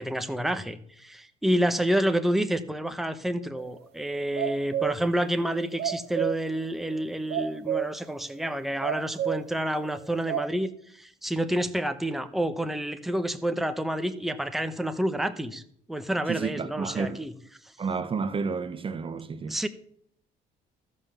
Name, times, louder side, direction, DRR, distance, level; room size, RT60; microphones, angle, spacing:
voice 1, 0.0-15.6 15.9-17.3 19.5-19.7, right 1 dB, ahead, 0.9 m, -29 dB
sound 1, 3.6-3.7 4.1-5.0 5.5-6.5 6.9-7.0 7.3-8.0 8.4-8.5 8.8-9.5 10.0-10.5, right 10 dB, 70° right, 1.3 m, -30 dB
voice 2, 16.3-17.2 17.8-19.6, right 5 dB, 30° right, 0.9 m, -31 dB
14.5 x 5.5 x 7.1 m
cardioid pair, 110°, 17 cm